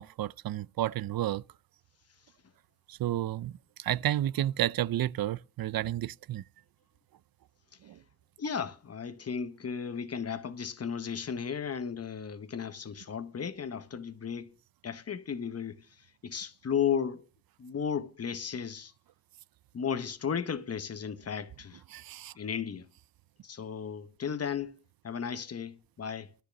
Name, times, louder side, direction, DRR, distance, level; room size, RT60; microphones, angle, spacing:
voice 1, 0.0-1.4 2.9-3.5 3.8-6.4 7.9-8.0 21.9-22.3, right 13 dB, 90° right, 0.5 m, -31 dB
voice 2, 8.4-14.5 14.8-15.9 16.2-17.3 17.6-18.9 19.7-21.8 22.4-22.9 23.4-24.8 25.0-26.3, left 7 dB, 45° left, 0.9 m, -34 dB
12.5 x 6.9 x 6.4 m
wide cardioid pair, 175°, 34 cm